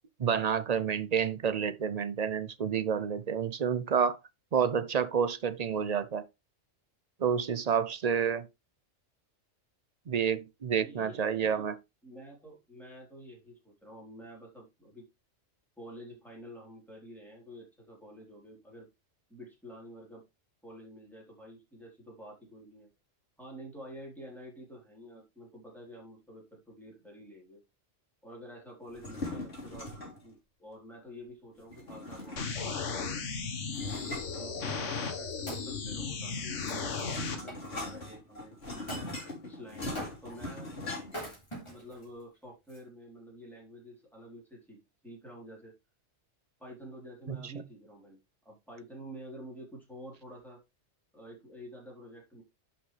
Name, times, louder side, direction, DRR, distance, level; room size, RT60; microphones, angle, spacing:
voice 1, 0.2-4.2 4.5-6.2 7.2-8.5 10.1-11.7 47.3-47.5, right 7 dB, 45° right, 0.5 m, -29 dB
voice 2, 10.8-11.7 12.0-15.1 15.8-18.9 19.3-20.2 20.6-22.9 23.4-27.6 28.2-29.9 30.2-33.2 34.2-38.9 39.4-40.7 41.7-45.7 46.6-48.2 48.4-50.6 51.1-52.4, equal, ahead, 3.9 m, -49 dB
sound 1, 28.9-30.3 31.7-32.7 33.7-35.1 36.3-41.3, left 2 dB, 55° left, 3.7 m, -41 dB
sound 2, 32.4-37.4, left 5 dB, 70° left, 1.7 m, -35 dB
Wood, 35.1-37.9 38.9-39.1 39.9-40.5 41.0-42.0 42.7-42.8, right 1 dB, 20° left, 3.7 m, -44 dB
11.0 x 5.9 x 3.3 m
omnidirectional pair, 1.3 m